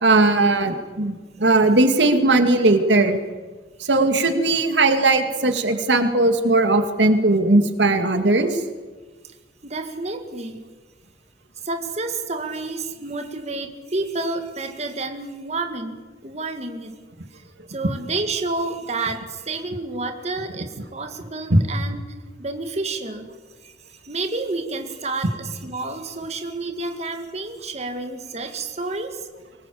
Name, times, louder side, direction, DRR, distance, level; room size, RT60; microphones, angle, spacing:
voice 1, 0.0-3.2 3.8-8.6 21.5-21.6, right 2 dB, 85° right, 7 dB, 2.3 m, -18 dB
voice 2, 9.6-10.7 11.6-17.0 17.3-17.4 17.7-22.1 22.4-23.3 23.6-29.3, right 3 dB, 40° right, 6 dB, 2.1 m, -30 dB
24.0 x 20.0 x 8.5 m, 1.3 s
head